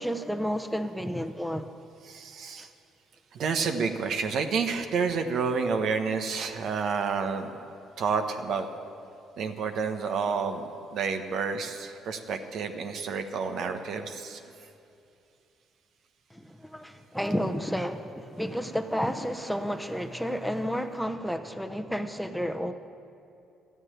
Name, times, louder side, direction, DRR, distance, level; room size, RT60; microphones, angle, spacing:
voice 1, 0.0-1.7 2.6-2.7 16.3-22.7, equal, ahead, 8 dB, 0.9 m, -31 dB
voice 2, 2.0-2.7 3.3-7.5 8.0-8.7 9.4-14.4, right 5 dB, 65° right, 6 dB, 1.2 m, -29 dB
13.5 x 9.6 x 9.2 m, 2.6 s
supercardioid pair, 70°, 0 cm